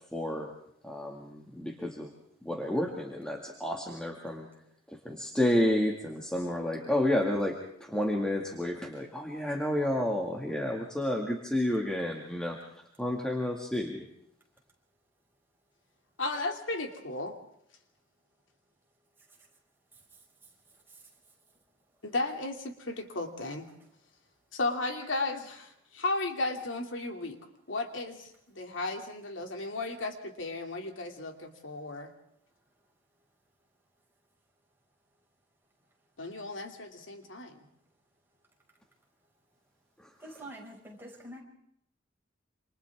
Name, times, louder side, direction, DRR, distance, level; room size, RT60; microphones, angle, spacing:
voice 1, 0.1-0.5 0.8-2.1 2.4-4.5 5.0-7.6 7.8-12.6 13.0-14.0, left 1 dB, 5° left, 0 dB, 2.1 m, -30 dB
voice 2, 16.2-17.3 22.0-23.7 24.5-27.4 27.7-32.1 36.2-37.6, left 2 dB, 80° left, 4 dB, 2.7 m, -34 dB
voice 3, 40.2-41.4, right 1 dB, 10° right, -2 dB, 5.7 m, -45 dB
28.0 x 27.0 x 3.6 m, 0.72 s
head